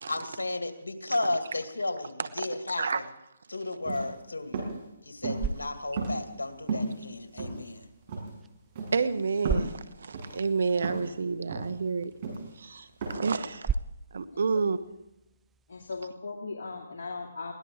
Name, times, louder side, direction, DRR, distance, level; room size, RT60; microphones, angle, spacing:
voice 1, 0.1-3.0 3.5-4.7 5.1-7.9, left 2 dB, 90° left, 7 dB, 2.1 m, -33 dB
sound 1, 3.8-4.1 4.5-4.7 5.2-5.5 6.0-6.4 6.7-6.9 7.4-7.8 8.1-8.3 8.7-9.0 9.4-9.7 10.1-10.3 10.8-11.1 11.5-11.7 12.2-12.5 13.0-13.1, right 3 dB, 40° right, 6.4 m, -33 dB
sound 2, 5.0-16.1, right 5 dB, 10° right, 0.5 m, -40 dB
voice 2, 8.9-12.1 12.6-13.7 14.1-14.8, right 4 dB, 65° right, 13 dB, 1.3 m, -29 dB
voice 3, 13.1-13.5 15.7-17.5, left 4 dB, 65° left, -2 dB, 2.5 m, -38 dB
22.5 x 17.0 x 3.7 m, 0.95 s
hypercardioid pair, 145°, 0 cm